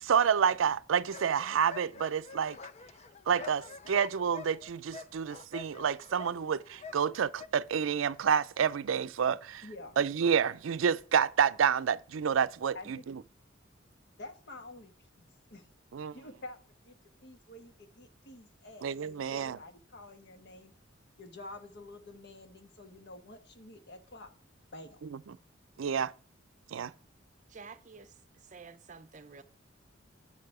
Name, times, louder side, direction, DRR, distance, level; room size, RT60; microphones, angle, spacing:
voice 1, 0.0-2.6 3.3-9.6 10.0-13.2 15.9-16.2 18.8-19.6 25.8-26.1 26.7-26.9, right 7 dB, 85° right, 0.4 m, -29 dB
sound 1, 0.9-7.5, left 5 dB, 35° left, 0.5 m, -47 dB
voice 2, 9.6-10.0 12.7-13.0 14.2-14.9 15.2-15.7 16.1-16.6 16.8-17.0 17.2-20.7 21.2-24.3 24.7-25.0, left 2 dB, 60° left, 1.4 m, -48 dB
voice 3, 27.5-28.1 28.5-29.4, right 5 dB, 40° right, 0.6 m, -50 dB
8.5 x 6.7 x 4.8 m
head